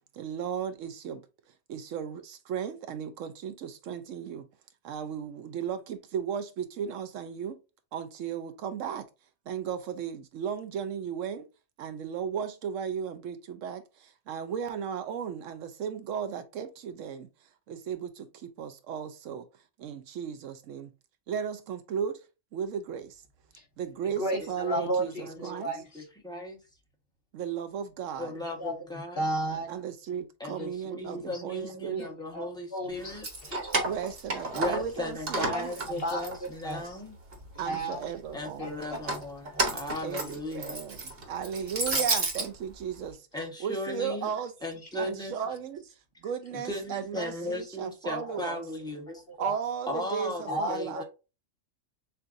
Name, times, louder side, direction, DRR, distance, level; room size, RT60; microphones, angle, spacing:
voice 1, 0.1-1.2 1.7-4.5 4.8-7.6 7.9-9.1 9.5-11.5 11.8-17.3 17.7-19.5 19.8-20.9 21.3-22.2 22.5-23.2 23.8-25.7 27.3-28.3 29.7-32.1 33.8-35.7 37.6-38.7 40.0-43.3 43.6-44.5 45.0-48.6 49.4-51.0, right 8 dB, 75° right, 0.9 m, -35 dB
voice 2, 24.1-26.1 28.3-29.7 31.3-31.4 32.0-32.4 32.7-33.9 35.5-37.0 37.5-38.1 38.6-39.2 39.4-39.7 41.7-42.0 44.9-45.1 48.2-48.4 49.3-49.6 50.5-51.0, right 1 dB, 50° left, 1.3 m, -34 dB
voice 3, 25.2-25.6 25.9-26.6 28.2-29.3 30.4-33.3 34.5-37.1 38.3-40.8 43.3-44.3 44.6-45.3 46.5-49.2 49.9-51.0, left 1 dB, 5° left, 1.1 m, -36 dB
Keys jangling, 33.1-35.0 35.3-36.9 37.3-38.0 38.8-42.5, right 2 dB, 50° right, 1.3 m, -31 dB
6.7 x 2.5 x 2.6 m
omnidirectional pair, 1.4 m